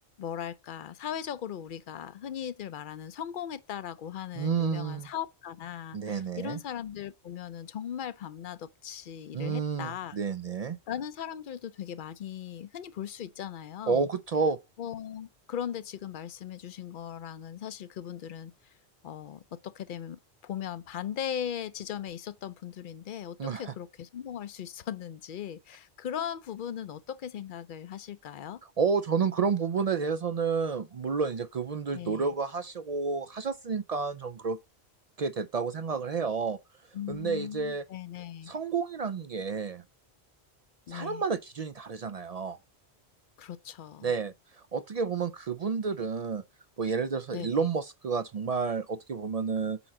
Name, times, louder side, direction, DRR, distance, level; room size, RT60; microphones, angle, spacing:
voice 1, 0.2-10.2 10.9-14.1 14.8-18.7 19.0-28.6 31.9-32.3 36.9-38.5 40.9-41.2 43.4-44.1 47.3-47.7, left 9 dB, 60° left, 0.6 m, -38 dB
voice 2, 4.3-5.1 5.9-6.6 9.3-10.8 13.9-14.6 23.4-23.7 28.8-34.6 35.2-36.6 37.1-37.8 38.5-39.8 40.9-42.6 44.0-44.3 44.7-46.4 46.8-49.8, right 5 dB, 55° right, 0.4 m, -30 dB
8.1 x 4.5 x 3.8 m
omnidirectional pair, 1.1 m